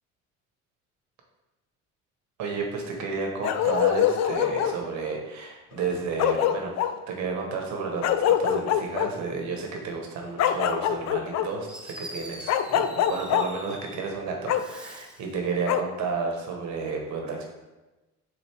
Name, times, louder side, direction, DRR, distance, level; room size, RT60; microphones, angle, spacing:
voice 1, 2.4-17.5, right 4 dB, 75° right, 1 dB, 1.5 m, -32 dB
Bark, 3.4-4.8 5.8-5.9 6.2-6.9 8.0-9.1 10.4-11.5 12.5-13.4 14.5-14.6 15.7-15.8, left 10 dB, 65° left, 0.5 m, -24 dB
Fireworks, 11.7-14.1 14.5-15.3, equal, 5° right, 0.7 m, -43 dB
7.6 x 3.8 x 3.6 m, 1.1 s
cardioid pair, 105°, 29 cm